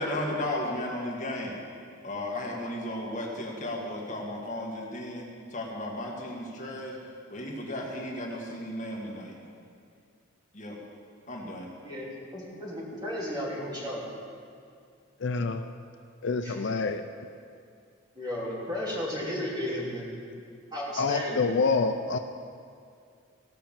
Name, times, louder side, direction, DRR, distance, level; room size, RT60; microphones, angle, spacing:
voice 1, 0.0-1.6 2.0-6.9 7.3-9.3 10.5-10.8 11.3-11.7, left 1 dB, 40° left, -2 dB, 1.7 m, -34 dB
voice 2, 12.3-14.1 16.4-16.5 18.1-20.1 20.7-21.4, left 1 dB, 20° right, -6 dB, 2.9 m, -34 dB
voice 3, 15.2-15.7 16.2-17.0 21.0-22.2, left 4 dB, 60° left, 7 dB, 0.4 m, -27 dB
17.0 x 5.7 x 7.4 m, 2.3 s
head